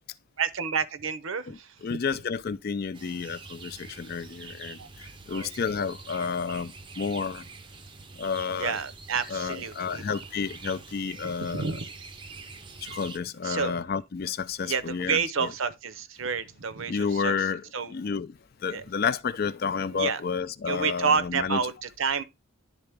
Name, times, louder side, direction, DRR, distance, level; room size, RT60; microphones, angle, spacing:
voice 1, 0.4-1.8 4.8-4.9 5.3-5.5 8.5-10.0 11.2-11.8 13.4-13.8 14.7-17.9 18.7-18.9 19.9-20.2 20.7-22.2, right 6 dB, 70° right, 0.7 m, -30 dB
voice 2, 1.8-4.8 5.3-6.7 7.0-7.4 8.2-8.7 9.3-11.7 12.9-15.5 16.9-17.6 17.9-18.3 18.6-21.6, left 5 dB, 45° left, 0.4 m, -30 dB
sound 1, 2.9-13.2, right 4 dB, 20° right, 0.5 m, -45 dB
10.5 x 3.8 x 3.4 m
head